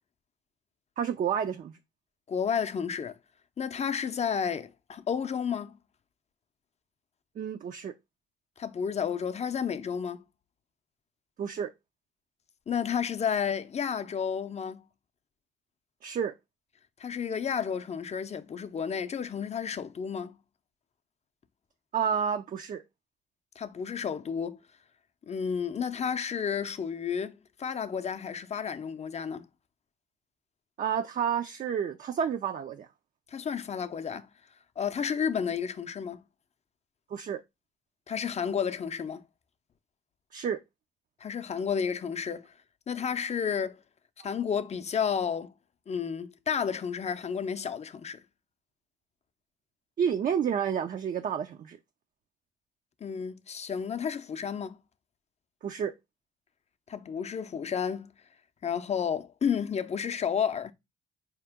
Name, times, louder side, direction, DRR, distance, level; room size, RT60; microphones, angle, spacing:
voice 1, 1.0-1.8 7.4-7.9 11.4-11.7 16.0-16.3 21.9-22.8 30.8-32.9 37.1-37.4 40.3-40.6 50.0-51.8 55.6-55.9, right 8 dB, 45° right, 0.4 m, -30 dB
voice 2, 2.3-3.2 3.6-5.8 8.6-10.2 12.7-14.8 17.0-20.4 23.6-24.6 25.3-29.5 33.3-34.3 34.8-36.2 38.1-39.2 41.2-42.5 42.9-43.8 44.2-45.5 45.9-48.2 53.0-54.8 56.9-58.1 58.6-60.7, left 7 dB, 35° left, 0.5 m, -31 dB
4.3 x 2.9 x 3.4 m
cardioid pair, 90°, 20 cm